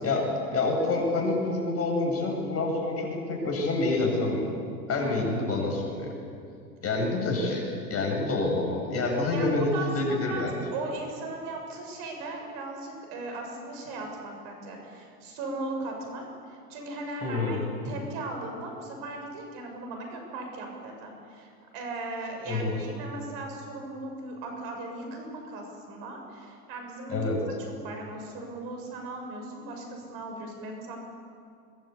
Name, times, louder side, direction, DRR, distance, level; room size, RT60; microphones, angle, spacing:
voice 1, 0.0-4.5 4.9-6.1 6.8-10.6 17.2-17.6 22.5-22.8 27.1-27.4, left 2 dB, 30° left, 1 dB, 7.8 m, -27 dB
voice 2, 5.0-5.4 9.3-17.6 17.8-27.5 27.8-31.0, right 2 dB, 50° right, 2 dB, 6.9 m, -38 dB
23.0 x 20.5 x 8.5 m, 2.4 s
hypercardioid pair, 95°, 47 cm